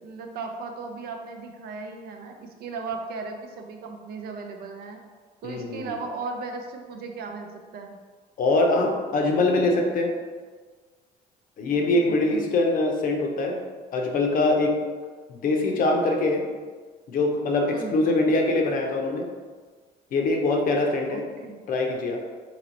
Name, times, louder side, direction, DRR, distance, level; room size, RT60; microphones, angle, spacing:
voice 1, 0.0-5.0 5.4-8.0 12.1-12.5 17.7-18.1 21.1-21.6, right 4 dB, 65° right, 3 dB, 0.6 m, -36 dB
voice 2, 5.4-5.9 8.4-10.1 11.6-13.6 13.9-14.7 15.3-16.4 17.1-19.3 20.1-21.2 21.7-22.2, left 2 dB, 55° left, 2 dB, 0.7 m, -23 dB
3.0 x 3.0 x 4.0 m, 1.5 s
cardioid pair, 110°, 17 cm